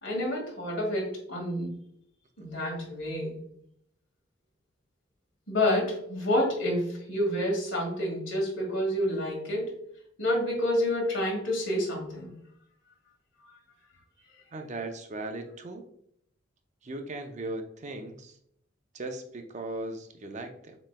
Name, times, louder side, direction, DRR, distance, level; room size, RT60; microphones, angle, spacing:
voice 1, 0.0-1.7 2.4-3.4 5.5-9.8 10.2-12.3, left 1 dB, 70° left, -1 dB, 1.9 m, -29 dB
voice 2, 14.5-15.8 16.8-18.4 18.9-20.8, right 2 dB, 35° right, 5 dB, 0.5 m, -38 dB
7.4 x 3.1 x 2.2 m, 0.69 s
head